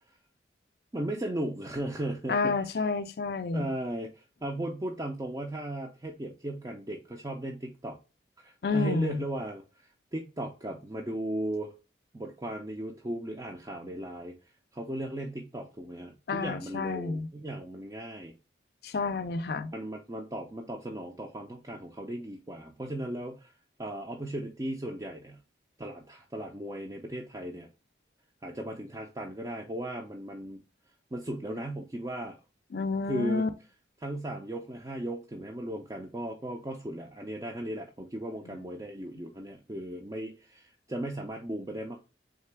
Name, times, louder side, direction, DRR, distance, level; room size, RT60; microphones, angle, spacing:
voice 1, 0.9-2.5 3.5-8.0 8.4-11.7 12.1-14.4 14.7-18.4 19.7-23.5 23.8-25.4 25.8-27.7 28.4-30.6 31.1-32.4 33.1-33.5 34.0-42.0, right 1 dB, 20° right, 0.4 m, -36 dB
voice 2, 2.3-3.7 8.6-9.2 16.3-17.3 18.8-19.7 32.7-33.5 38.5-38.6, left 4 dB, 55° left, 0.4 m, -30 dB
3.7 x 3.3 x 3.3 m
head